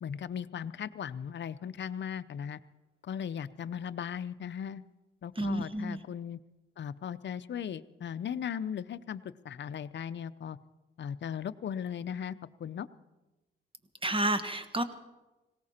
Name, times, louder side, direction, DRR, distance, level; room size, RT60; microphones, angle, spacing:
voice 1, 0.0-2.6 3.1-4.8 5.2-6.4 6.8-10.6 11.0-12.9, left 8 dB, 60° left, 14 dB, 0.6 m, -37 dB
voice 2, 5.4-6.0 14.0-14.8, right 1 dB, 25° right, 10 dB, 1.3 m, -30 dB
19.0 x 17.5 x 4.3 m, 1.1 s
cardioid pair, 80°, 21 cm